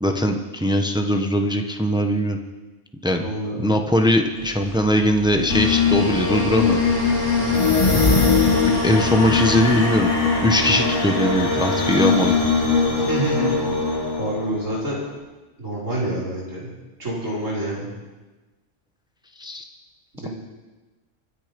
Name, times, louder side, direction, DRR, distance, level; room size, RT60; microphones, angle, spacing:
voice 1, 0.0-2.4 3.0-3.2 3.6-6.8 8.7-10.1 10.4-12.4 19.4-19.7, equal, 5° right, 4 dB, 1.0 m, -20 dB
voice 2, 3.1-3.7 7.4-8.0 12.9-15.0 15.6-16.7 17.0-17.9 20.2-20.3, right 1 dB, 80° right, -6 dB, 5.9 m, -28 dB
sound 1, 4.4-9.6, right 2 dB, 50° right, 2.3 m, -39 dB
sound 2, 5.5-14.9, left 4 dB, 75° left, 3.1 m, -21 dB
sound 3, 7.5-9.0, left 4 dB, 30° left, 1.2 m, -19 dB
24.5 x 9.6 x 5.3 m, 1.2 s
omnidirectional pair, 1.3 m